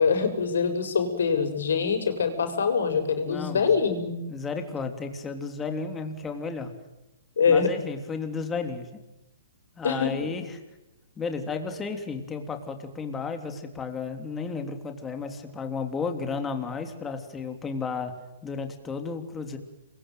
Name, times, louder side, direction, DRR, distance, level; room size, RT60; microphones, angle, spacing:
voice 1, 0.0-4.1 7.4-7.7 9.8-10.3, left 5 dB, 85° left, 8 dB, 7.2 m, -24 dB
voice 2, 3.2-3.6 4.3-6.7 7.5-8.9 9.8-10.5 11.2-18.1 18.4-19.6, left 4 dB, 10° left, 6 dB, 3.3 m, -33 dB
27.5 x 23.5 x 9.2 m, 0.96 s
hypercardioid pair, 160°, 0 cm